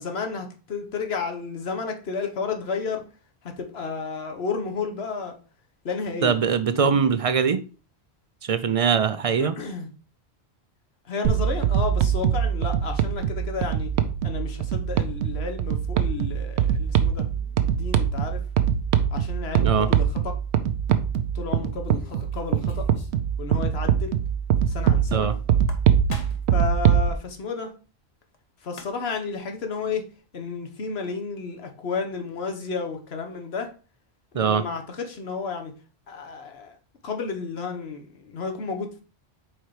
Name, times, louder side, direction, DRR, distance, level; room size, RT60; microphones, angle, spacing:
voice 1, 0.0-3.0 3.4-5.4 5.8-6.4 6.7-7.1 9.3-9.9 11.0-13.9 14.2-18.4 19.1-20.3 21.3-22.9 23.4-24.2 24.7-25.3 26.5-27.7 28.6-30.0 30.3-33.7 34.3-35.7 36.1-36.8 37.0-39.0, left 5 dB, 70° left, 1.3 m, -32 dB
voice 2, 6.2-7.6 8.4-9.6 19.6-19.9 25.1-25.3 34.3-34.6, right 6 dB, 55° right, 0.4 m, -22 dB
sound 1, 11.2-27.1, right 9 dB, 85° right, 0.9 m, -23 dB
sound 2, 21.8-23.3 23.5-23.6 23.9-24.0 25.5-26.6 28.3-28.4 28.6-29.2, left 3 dB, 40° left, 0.9 m, -43 dB
4.8 x 4.4 x 4.8 m
omnidirectional pair, 1.1 m